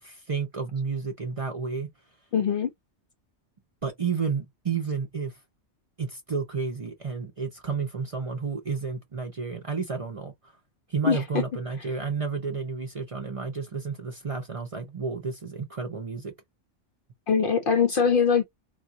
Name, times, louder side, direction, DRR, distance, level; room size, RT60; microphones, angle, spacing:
voice 1, 0.0-1.9 3.8-5.4 6.0-10.3 10.9-16.3, right 5 dB, 35° right, 0.6 m, -31 dB
voice 2, 2.3-2.7 11.0-11.2 17.3-18.4, left 6 dB, 60° left, 0.6 m, -22 dB
3.6 x 2.3 x 2.6 m
omnidirectional pair, 1.2 m